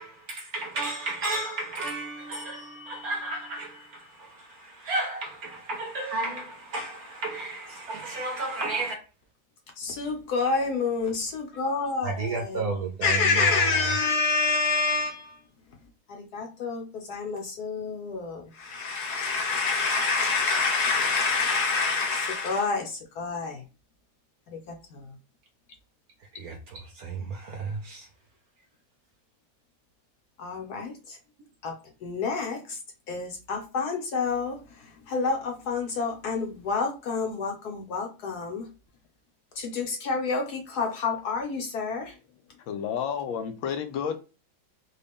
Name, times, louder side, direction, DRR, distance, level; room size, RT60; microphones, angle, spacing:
voice 1, 0.0-9.0 12.0-13.9 26.3-28.1, right 3 dB, 65° right, 1.0 m, -33 dB
voice 2, 9.8-12.7 13.0-15.4 16.1-23.6 24.5-25.2 30.4-31.2 31.6-31.7 32.0-32.8 33.1-38.7 39.6-42.1, left 4 dB, 60° left, 1.1 m, -28 dB
voice 3, 42.7-44.2, left 8 dB, 80° left, 1.3 m, -30 dB
3.9 x 2.3 x 3.4 m
omnidirectional pair, 2.1 m